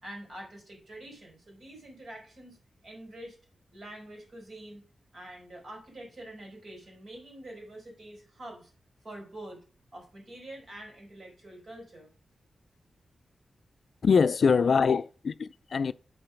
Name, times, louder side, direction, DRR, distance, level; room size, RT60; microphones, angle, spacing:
voice 1, 0.0-2.6 2.8-3.4 3.7-4.8 5.1-8.7 9.0-9.6 9.9-12.1 14.5-14.6, right 1 dB, 65° right, 4.6 m, -46 dB
voice 2, 14.0-15.9, left 5 dB, 65° left, 0.4 m, -23 dB
8.1 x 5.6 x 5.2 m
cardioid pair, 70°, 0 cm